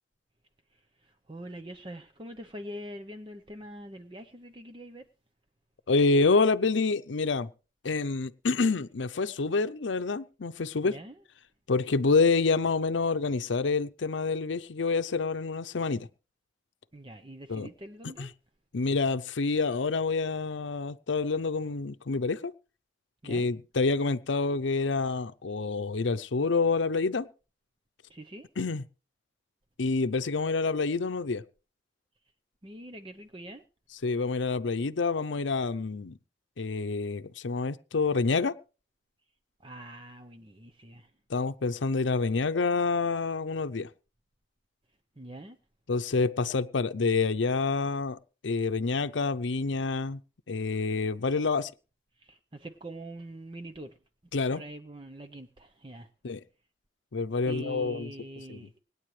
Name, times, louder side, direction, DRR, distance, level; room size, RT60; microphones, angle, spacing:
voice 1, 0.7-5.1 10.8-11.2 16.9-18.3 23.2-23.5 28.1-28.5 32.6-33.6 39.6-41.1 45.2-45.6 52.2-54.0 54.5-56.1 57.5-58.7, right 1 dB, 25° right, 0.8 m, -44 dB
voice 2, 5.9-7.5 7.8-10.9 11.7-16.1 17.5-17.7 18.2-18.3 18.7-22.5 23.2-27.3 28.6-28.8 29.8-31.4 34.0-36.1 36.6-38.6 41.3-43.9 45.9-48.2 48.4-50.2 50.5-51.7 54.3-54.6 56.2-56.4 57.1-58.1 58.5-58.7, left 4 dB, 85° left, 0.6 m, -27 dB
25.5 x 9.6 x 3.2 m
head